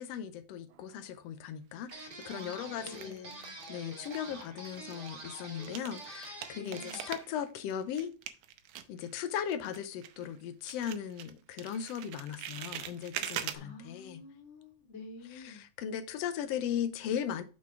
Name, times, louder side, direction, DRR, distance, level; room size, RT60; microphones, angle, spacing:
voice 1, 0.0-8.1 8.9-14.2 15.3-17.4, left 9 dB, 85° left, 1.4 m, -38 dB
sound 1, 0.7-1.3 1.9-3.8 4.0-10.4 10.7-13.6, right 11 dB, 80° right, 2.1 m, -44 dB
sound 2, 1.9-7.2, right 2 dB, 45° right, 0.6 m, -47 dB
voice 2, 2.3-3.6 6.5-7.0 13.5-15.6, left 3 dB, 25° left, 2.0 m, -49 dB
6.4 x 4.2 x 4.7 m
omnidirectional pair, 3.6 m